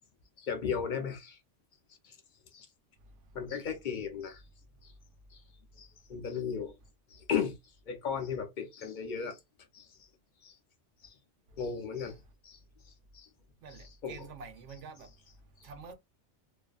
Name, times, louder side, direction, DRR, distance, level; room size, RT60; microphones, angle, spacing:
voice 1, 0.4-1.4 2.0-2.1 2.5-2.7 3.3-4.4 4.8-4.9 5.3-5.4 5.8-6.7 7.1-7.5 7.9-9.4 9.7-9.9 10.4-10.5 11.0-11.1 11.6-12.1 12.4-12.6 13.1-13.3 13.7-14.3 14.7-14.8, left 7 dB, 60° left, 0.5 m, -36 dB
voice 2, 13.6-15.1 15.6-15.9, right 5 dB, 80° right, 0.9 m, -47 dB
2.6 x 2.3 x 2.2 m
omnidirectional pair, 1.2 m